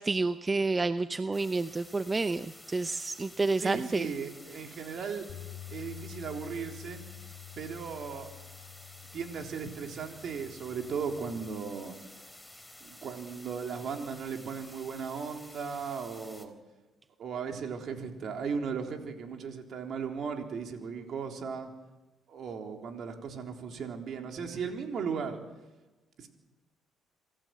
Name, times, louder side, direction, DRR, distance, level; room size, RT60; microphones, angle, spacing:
voice 1, 0.0-4.1, right 3 dB, 25° right, 12 dB, 0.8 m, -29 dB
sound 1, 1.3-16.5, left 1 dB, 5° left, 4.0 m, -52 dB
voice 2, 3.6-5.3 5.7-7.0 7.6-8.3 9.1-12.0 12.8-16.5 17.2-21.7 22.3-25.4 26.2-26.3, right 6 dB, 60° right, 3 dB, 3.7 m, -36 dB
Bass guitar, 5.3-11.5, left 16 dB, 75° left, 2.8 m, -48 dB
26.5 x 15.0 x 7.8 m, 1.1 s
supercardioid pair, 60°, 0 cm